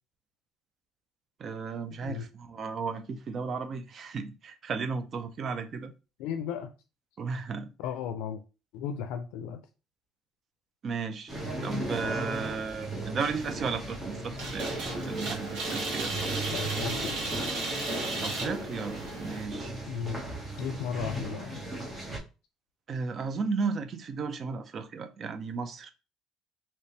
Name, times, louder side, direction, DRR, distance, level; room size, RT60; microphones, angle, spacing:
voice 1, 1.4-5.9 7.2-7.7 10.8-14.7 15.1-16.3 18.2-19.7 22.9-25.9, right 5 dB, 35° right, 0.4 m, -34 dB
voice 2, 6.2-6.7 7.8-8.4 8.7-9.6 16.5-17.1 19.9-20.2 20.6-21.7, left 8 dB, 85° left, 0.4 m, -35 dB
sound 1, 11.3-22.2, right 1 dB, 15° right, 0.8 m, -37 dB
sound 2, 14.4-19.4, right 2 dB, 85° right, 1.4 m, -34 dB
3.2 x 2.9 x 2.7 m
cardioid pair, 155°, 0 cm